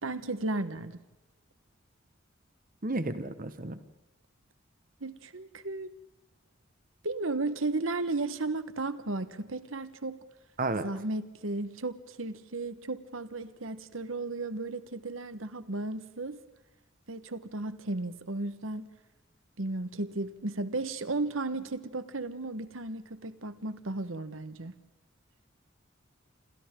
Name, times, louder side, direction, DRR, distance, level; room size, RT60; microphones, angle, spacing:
voice 1, 0.0-1.0 5.0-5.9 7.0-10.2 10.7-16.4 17.1-18.9 19.6-24.7, right 2 dB, 85° right, 12 dB, 1.4 m, -34 dB
voice 2, 2.8-3.8 10.6-10.9, right 2 dB, 45° right, 10 dB, 1.4 m, -32 dB
28.5 x 27.0 x 3.8 m, 1.0 s
head